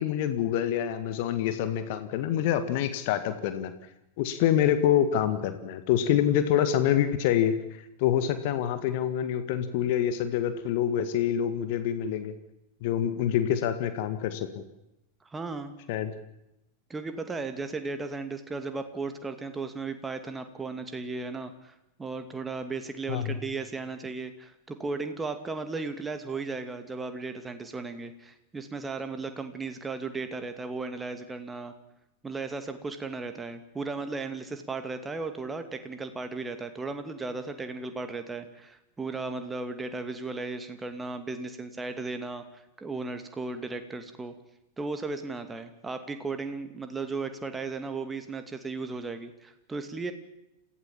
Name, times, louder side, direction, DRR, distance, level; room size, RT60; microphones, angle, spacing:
voice 1, 0.0-3.7 4.2-7.5 8.0-12.3 12.8-14.6 15.9-16.1 23.1-23.4, left 10 dB, 50° left, 10 dB, 1.9 m, -26 dB
voice 2, 15.3-15.8 16.9-31.7 32.2-44.4 44.8-50.1, right 3 dB, 15° right, 8 dB, 2.4 m, -35 dB
27.5 x 16.5 x 7.4 m, 0.88 s
figure-of-eight pair, 90°, 0 cm